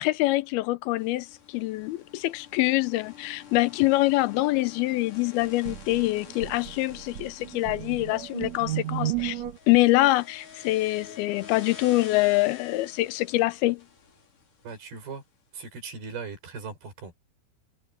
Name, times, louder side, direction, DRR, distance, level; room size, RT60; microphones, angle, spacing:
voice 1, 0.0-13.8, left 19 dB, 85° left, 2.7 m, -25 dB
sound 1, 1.0-15.2, left 7 dB, 60° left, 5.7 m, -48 dB
sound 2, 5.4-9.6, right 14 dB, 60° right, 2.2 m, -34 dB
voice 2, 14.6-15.2 15.5-17.2, right 5 dB, 85° right, 7.6 m, -39 dB
omnidirectional pair, 4.3 m